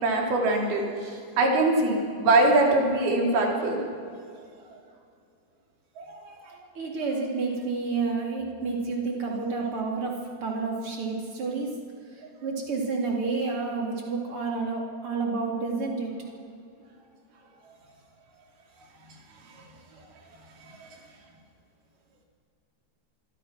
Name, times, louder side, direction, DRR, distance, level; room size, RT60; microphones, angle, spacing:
voice 1, 0.0-0.8 1.4-3.8 6.0-6.4, right 2 dB, 60° right, 0 dB, 5.3 m, -22 dB
voice 2, 6.7-11.7 12.4-16.1, right 4 dB, 30° right, -1 dB, 4.2 m, -29 dB
26.0 x 23.0 x 6.2 m, 2.4 s
omnidirectional pair, 4.9 m